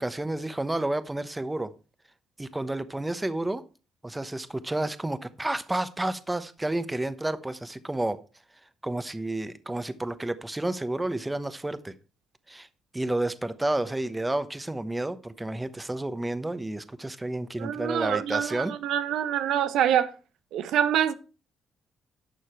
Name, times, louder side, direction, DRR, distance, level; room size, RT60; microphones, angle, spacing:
voice 1, 0.0-1.7 2.4-3.6 4.0-8.2 8.8-11.9 12.5-12.7 12.9-18.7, right 1 dB, 15° right, 1.0 m, -30 dB
voice 2, 17.6-20.1 20.5-21.1, right 10 dB, 80° right, 0.7 m, -25 dB
11.5 x 6.5 x 4.5 m
cardioid pair, 90°, 0 cm